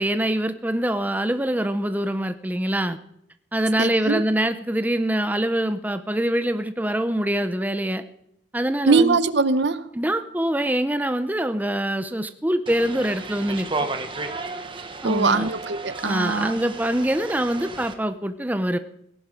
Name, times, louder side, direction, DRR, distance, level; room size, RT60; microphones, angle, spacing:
voice 1, 0.0-3.0 3.5-8.0 8.5-9.2 9.9-13.7 15.0-15.5 16.0-18.8, right 1 dB, 10° right, 0.6 m, -24 dB
voice 2, 3.8-4.2 8.9-9.8 15.0-16.5, right 4 dB, 60° right, 0.8 m, -21 dB
sound 1, 12.7-17.9, right 3 dB, 25° right, 1.2 m, -33 dB
17.5 x 11.0 x 5.1 m
head